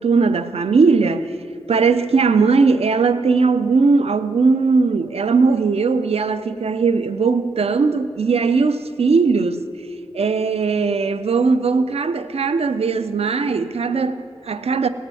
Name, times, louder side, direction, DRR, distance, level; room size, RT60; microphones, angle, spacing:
voice 1, 0.0-1.3 1.7-9.6 10.1-14.9, right 4 dB, 90° right, 0.5 m, -18 dB
18.5 x 6.5 x 7.6 m
wide cardioid pair, 70°, 10 cm